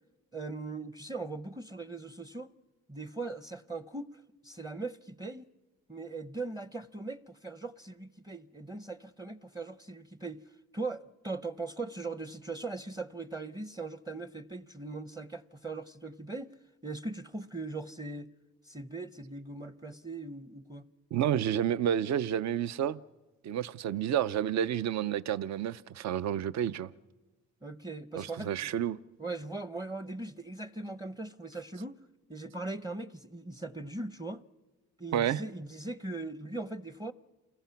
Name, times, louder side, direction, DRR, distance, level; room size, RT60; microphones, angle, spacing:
voice 1, 0.3-2.5 2.9-5.4 5.9-10.4 10.7-16.5 16.8-18.3 18.6-20.9 27.6-28.7 29.2-32.0 32.3-34.4 35.0-37.1, right 3 dB, 15° right, 0.7 m, -40 dB
voice 2, 21.1-23.0 23.4-26.9 28.1-29.0 35.1-35.4, right 10 dB, 65° right, 0.6 m, -30 dB
28.5 x 21.0 x 5.8 m
cardioid pair, 90°, 30 cm